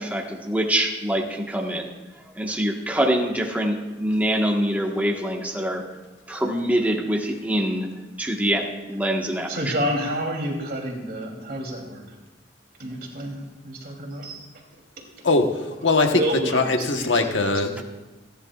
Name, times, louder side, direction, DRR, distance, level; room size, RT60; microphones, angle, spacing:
voice 1, 0.0-1.9 2.3-5.8 6.3-7.9 8.2-9.7, right 1 dB, 10° right, 0 dB, 1.4 m, -24 dB
voice 2, 9.5-12.0 12.8-14.4 16.0-17.3, equal, 55° right, 0 dB, 3.1 m, -29 dB
voice 3, 15.8-16.2 16.5-17.8, left 3 dB, 85° left, 4 dB, 1.2 m, -20 dB
27.5 x 10.5 x 2.4 m, 1.1 s
head